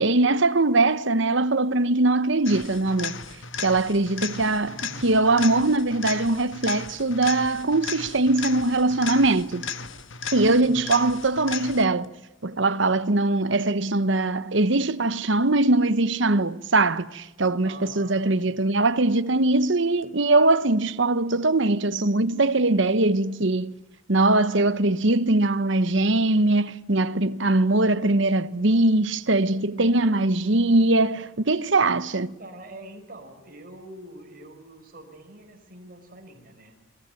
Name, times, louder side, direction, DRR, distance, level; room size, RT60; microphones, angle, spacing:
voice 1, 0.0-3.2 3.6-9.7 10.3-12.1 12.4-23.7 24.1-32.3, right 2 dB, 60° right, 1.1 m, -21 dB
sound 1, 2.4-12.1 20.0-20.1, left 6 dB, 65° left, 1.6 m, -36 dB
voice 2, 4.6-5.3 10.4-11.2 17.6-18.4 21.3-21.4 32.4-36.8, right 1 dB, 45° right, 5.2 m, -45 dB
29.0 x 21.5 x 9.2 m
head